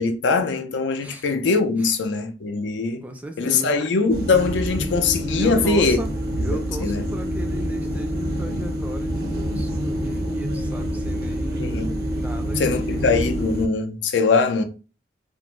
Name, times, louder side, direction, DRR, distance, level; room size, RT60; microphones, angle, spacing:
voice 1, 0.0-3.0 3.4-6.0 6.4-7.0 11.6-12.0 12.6-14.6, left 4 dB, 85° left, 0.5 m, -22 dB
voice 2, 3.0-3.8 5.4-13.0, right 1 dB, 10° right, 0.3 m, -35 dB
sound 1, 4.1-13.7, equal, 55° right, 0.5 m, -27 dB
2.5 x 2.0 x 3.0 m
head